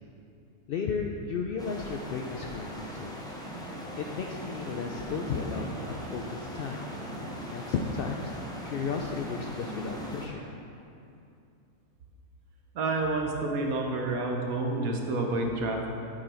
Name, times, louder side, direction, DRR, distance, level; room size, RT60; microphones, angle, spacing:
voice 1, 0.7-3.3 4.0-6.8 7.5-8.3 8.6-10.5, left 5 dB, 75° left, 2 dB, 0.5 m, -34 dB
sound 1, 1.6-10.3, equal, 5° left, 0.6 m, -39 dB
voice 2, 12.7-15.9, right 2 dB, 75° right, 1 dB, 1.4 m, -29 dB
8.7 x 6.6 x 4.4 m, 2.6 s
omnidirectional pair, 1.5 m